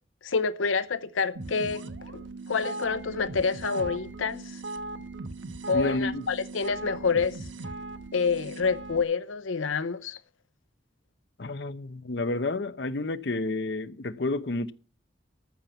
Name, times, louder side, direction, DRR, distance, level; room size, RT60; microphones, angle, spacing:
voice 1, 0.2-4.6 5.7-7.4 8.1-10.2, left 5 dB, 90° left, 0.7 m, -28 dB
sound 1, 1.4-9.0, right 2 dB, 75° right, 1.3 m, -38 dB
voice 2, 5.7-6.2 11.4-14.7, left 2 dB, 60° left, 0.8 m, -30 dB
14.0 x 5.9 x 8.0 m
head